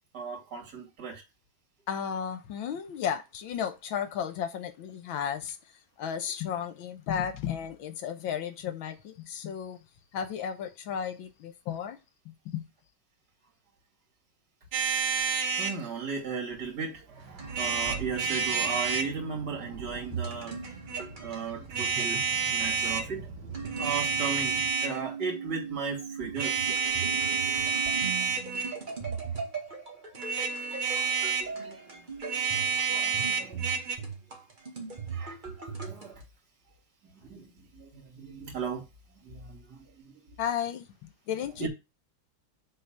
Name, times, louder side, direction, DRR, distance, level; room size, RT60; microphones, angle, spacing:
voice 1, 0.1-1.2 15.6-20.6 21.2-22.2 22.5-26.7 30.5-32.0 32.6-33.7 35.1-35.4 35.8-36.2 37.0-38.8 39.2-40.1 41.6-41.7, right 5 dB, 50° right, 3.0 m, -37 dB
voice 2, 1.9-9.8 10.1-12.0 12.3-12.7 40.4-41.7, left 8 dB, 75° left, 1.8 m, -34 dB
sound 1, 14.7-15.8 17.5-19.1 20.6-21.0 21.7-23.1 23.6-25.0 26.3-28.8 30.1-31.5 32.2-34.0, right 6 dB, 90° right, 2.0 m, -29 dB
sound 2, 15.3-24.7, right 3 dB, 70° right, 2.1 m, -47 dB
sound 3, 17.4-22.3 23.3-36.2, right 5 dB, 25° right, 1.7 m, -39 dB
6.9 x 3.9 x 6.4 m
omnidirectional pair, 2.2 m